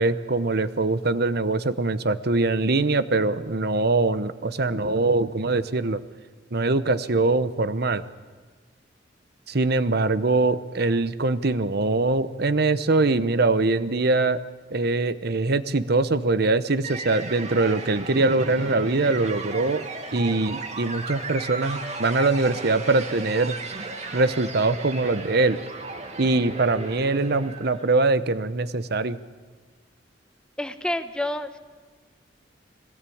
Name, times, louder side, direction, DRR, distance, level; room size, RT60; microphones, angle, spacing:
voice 1, 0.0-6.0 6.5-8.0 9.5-14.4 14.7-19.8 20.1-23.6 24.1-25.6 26.2-29.2, right 3 dB, 60° right, 13 dB, 0.9 m, -23 dB
sound 1, 16.8-28.0, right 3 dB, 40° right, 2.0 m, -36 dB
voice 2, 30.6-31.6, left 1 dB, 5° left, 9 dB, 1.0 m, -28 dB
22.0 x 18.0 x 8.6 m, 1.4 s
head